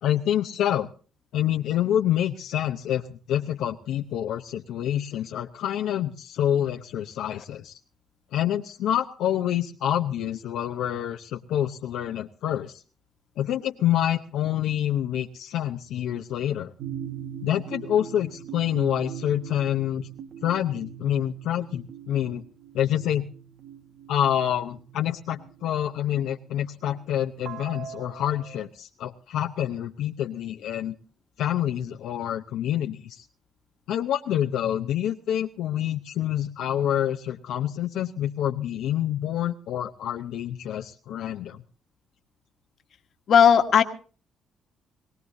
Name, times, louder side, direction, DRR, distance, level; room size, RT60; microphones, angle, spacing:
voice 1, 0.0-0.9 1.3-7.8 8.3-12.8 13.4-16.7 17.4-20.1 20.4-22.4 22.7-23.3 24.1-30.9 31.4-33.2 33.9-41.6, left 11 dB, 85° left, 2 dB, 0.8 m, -27 dB
sound 1, 16.8-26.0 26.8-28.7, right 9 dB, 75° right, 1.5 m, -41 dB
voice 2, 43.3-43.8, left 8 dB, 60° left, 7 dB, 1.5 m, -16 dB
22.5 x 17.5 x 2.7 m, 0.39 s
cardioid pair, 90°, 0 cm